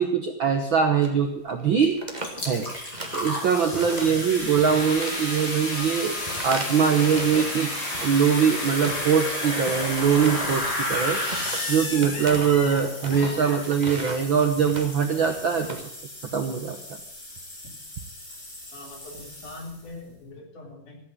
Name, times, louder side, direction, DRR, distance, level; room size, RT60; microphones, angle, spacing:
voice 1, 0.0-2.0 2.4-2.7 3.1-6.2 6.4-7.7 8.0-11.2 11.7-15.8 16.3-16.8, right 7 dB, 60° right, 5 dB, 1.3 m, -22 dB
sound 1, 1.0-1.2 1.5-1.6 1.9-3.4 3.7-4.3 4.6-7.6 7.9-9.2 9.6-15.8, right 2 dB, 30° right, 0.8 m, -38 dB
sound 2, 1.8-1.9 2.2-19.9, left 1 dB, 30° left, 4.9 m, -33 dB
sound 3, 4.6-14.2, left 5 dB, 50° left, 1.1 m, -38 dB
voice 2, 18.7-21.0, left 2 dB, 70° left, 0 dB, 5.2 m, -42 dB
15.0 x 8.7 x 7.9 m, 0.76 s
omnidirectional pair, 3.7 m